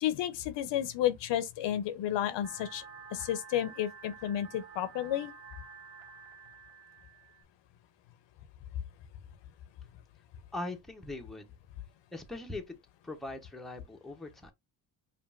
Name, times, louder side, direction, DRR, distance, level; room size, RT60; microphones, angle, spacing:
voice 1, 0.0-2.8 3.1-5.3, left 11 dB, 75° left, 0.7 m, -31 dB
sound 1, 2.4-7.4, right 6 dB, 30° right, 1.8 m, -50 dB
voice 2, 10.5-11.5 12.1-12.8 13.0-14.5, left 2 dB, ahead, 0.7 m, -41 dB
5.1 x 2.5 x 2.4 m
cardioid pair, 105°, 44 cm